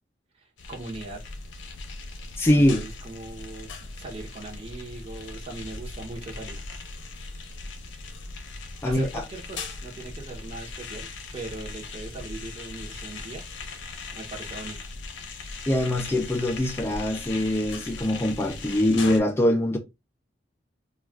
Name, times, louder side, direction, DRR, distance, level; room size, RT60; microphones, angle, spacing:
voice 1, 0.3-1.2 2.5-6.6 8.8-13.4 14.1-14.8, right 2 dB, 35° right, 0.8 m, -40 dB
sound 1, 0.6-19.2, left 3 dB, 80° left, 0.6 m, -39 dB
voice 2, 2.4-2.8 8.8-9.2 15.7-19.8, left 1 dB, 15° left, 0.3 m, -23 dB
2.3 x 2.3 x 3.3 m
head